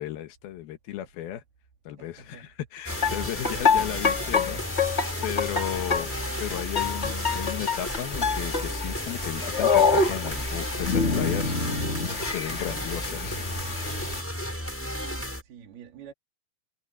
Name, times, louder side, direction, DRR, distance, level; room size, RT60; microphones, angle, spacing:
voice 1, 0.0-1.4 1.9-6.1 6.4-12.0 12.2-13.4, left 12 dB, 75° left, 3.1 m, -35 dB
voice 2, 2.0-2.5 5.2-5.6 14.9-16.1, right 8 dB, 75° right, 4.7 m, -48 dB
sound 1, 2.8-15.4, equal, 5° left, 6.7 m, -34 dB
sound 2, 2.9-14.2, left 5 dB, 25° left, 1.6 m, -27 dB
omnidirectional pair, 4.5 m